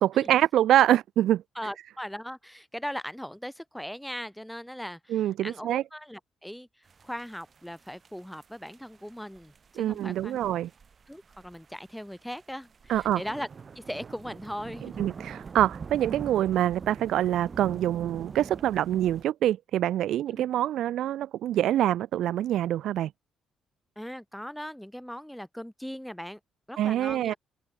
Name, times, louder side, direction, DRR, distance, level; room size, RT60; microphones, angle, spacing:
voice 1, 0.0-1.4 5.1-5.8 9.8-10.7 12.9-13.2 15.0-23.1 26.8-27.3, right 12 dB, 80° right, 1.0 m, -25 dB
voice 2, 1.6-10.4 11.1-13.5 13.7-15.0 20.4-20.5 24.0-26.4 26.7-27.4, equal, ahead, 4.3 m, -39 dB
sound 1, 6.9-19.2, right 5 dB, 40° right, 4.9 m, -44 dB
open air
cardioid pair, 90°, 0 cm